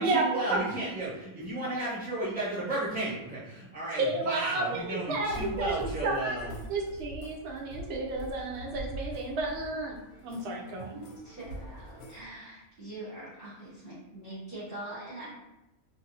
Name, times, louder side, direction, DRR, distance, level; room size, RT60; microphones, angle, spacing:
voice 1, 0.0-6.5, right 1 dB, 5° right, -8 dB, 1.0 m, -33 dB
voice 2, 4.0-6.4 6.7-9.9 10.2-10.9, right 3 dB, 60° right, -1 dB, 0.7 m, -31 dB
sound 1, 5.1-12.2, equal, 80° left, 1.1 m, -43 dB
voice 3, 10.4-15.3, right 2 dB, 45° right, -10 dB, 1.2 m, -43 dB
2.6 x 2.5 x 2.7 m, 0.93 s
omnidirectional pair, 1.6 m